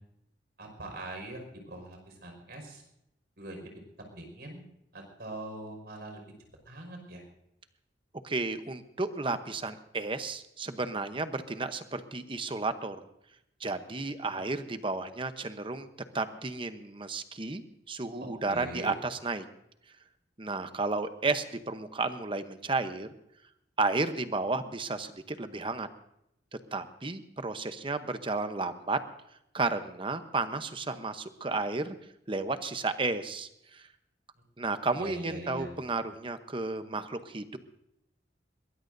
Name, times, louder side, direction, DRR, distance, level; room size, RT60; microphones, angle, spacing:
voice 1, 0.6-2.8 3.4-3.7 4.1-4.6 4.9-6.2 6.7-7.2 14.3-14.4 18.2-18.9 34.9-35.7, right 1 dB, 60° right, 3 dB, 5.3 m, -42 dB
voice 2, 8.2-13.0 13.6-15.9 16.1-17.6 17.9-19.4 20.4-23.1 23.8-25.9 26.7-29.0 29.5-31.9 32.3-33.8 34.6-37.6, right 3 dB, 30° right, 10 dB, 0.9 m, -32 dB
22.0 x 20.0 x 2.7 m, 0.81 s
head